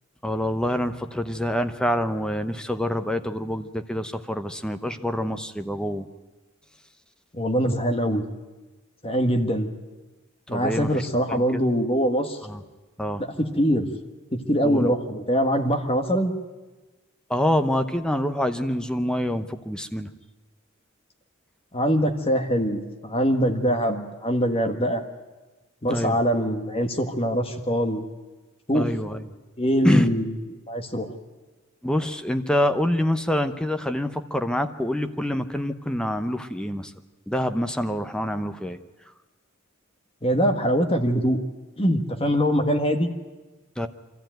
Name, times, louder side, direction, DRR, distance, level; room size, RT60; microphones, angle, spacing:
voice 1, 0.2-6.1 10.5-11.0 11.3-11.6 12.4-12.6 13.0-13.2 14.6-14.9 17.3-20.1 25.8-26.2 28.7-29.2 29.8-30.1 31.8-36.9 37.3-38.8 43.8-43.9, equal, 5° left, 8 dB, 0.8 m, -26 dB
voice 2, 7.3-8.2 9.0-9.7 10.5-12.4 13.2-13.9 14.5-16.3 21.7-25.0 25.8-28.0 28.7-28.8 29.6-30.3 30.7-31.1 40.2-41.4 41.8-43.1, equal, 30° left, 5 dB, 1.6 m, -23 dB
24.5 x 14.0 x 9.1 m, 1.2 s
head